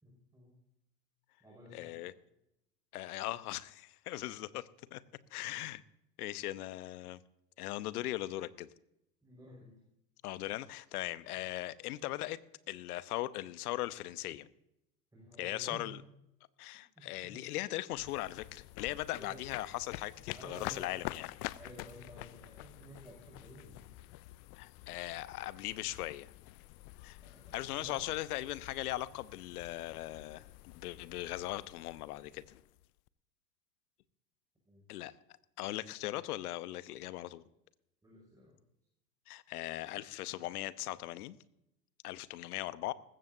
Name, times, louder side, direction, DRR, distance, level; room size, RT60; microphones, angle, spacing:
voice 1, 0.0-0.6 1.4-2.0 9.2-9.8 15.1-15.9 17.0-17.4 19.1-19.4 20.3-21.2 21.5-23.9 27.2-28.1 34.6-34.9 38.0-38.6, right 1 dB, 5° right, -2 dB, 5.8 m, -53 dB
voice 2, 1.7-2.1 2.9-5.0 5.3-5.8 6.2-7.2 7.6-8.7 10.2-12.4 12.7-14.5 15.4-16.0 16.6-21.3 24.6-26.3 27.0-27.2 27.5-30.4 30.7-32.4 34.9-35.1 35.6-37.5 39.3-41.4 42.0-42.9, left 16 dB, 65° left, 16 dB, 1.0 m, -39 dB
sound 1, 17.9-33.1, left 19 dB, 35° left, 0.4 m, -48 dB
19.5 x 15.5 x 2.7 m, 0.84 s
hypercardioid pair, 90°, 49 cm